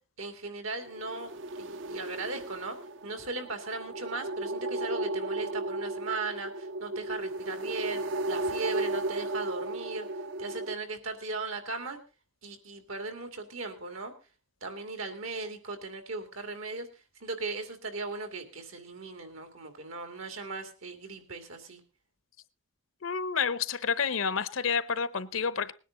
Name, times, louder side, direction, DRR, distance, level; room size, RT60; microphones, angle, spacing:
voice 1, 0.2-1.3 1.6-2.8 3.0-8.0 8.3-10.1 10.4-12.0 12.4-14.1 14.6-21.8, right 3 dB, 80° right, 2.5 m, -37 dB
sound 1, 0.9-10.7, right 2 dB, 65° right, 0.6 m, -35 dB
voice 2, 23.0-25.7, left 6 dB, 75° left, 0.8 m, -29 dB
19.5 x 10.0 x 3.8 m
head